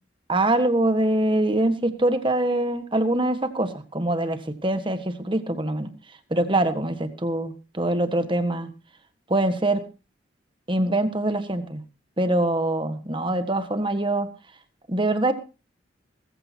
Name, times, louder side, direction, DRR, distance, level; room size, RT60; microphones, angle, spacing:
voice 1, 0.3-5.9 6.3-8.7 9.3-9.8 10.7-11.8 12.2-14.3 14.9-15.3, right 1 dB, 25° right, 9 dB, 1.5 m, -24 dB
19.5 x 14.5 x 2.9 m, 0.32 s
head